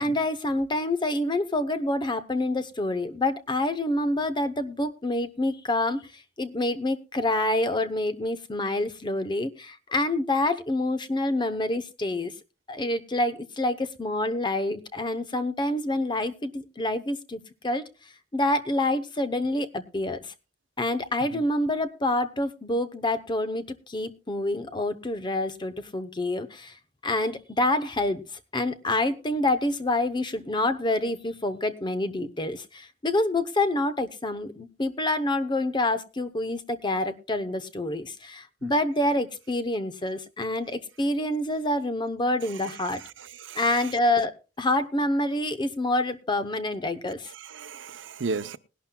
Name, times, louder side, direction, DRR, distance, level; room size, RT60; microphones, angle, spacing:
voice 1, 0.0-6.0 6.4-12.3 12.7-17.8 18.3-20.3 20.8-26.7 27.0-28.2 28.5-43.0 43.5-47.3, left 1 dB, 25° left, 0.8 m, -27 dB
voice 2, 43.2-43.7 47.3-48.6, right 4 dB, 75° right, 0.6 m, -35 dB
20.0 x 11.5 x 2.3 m
head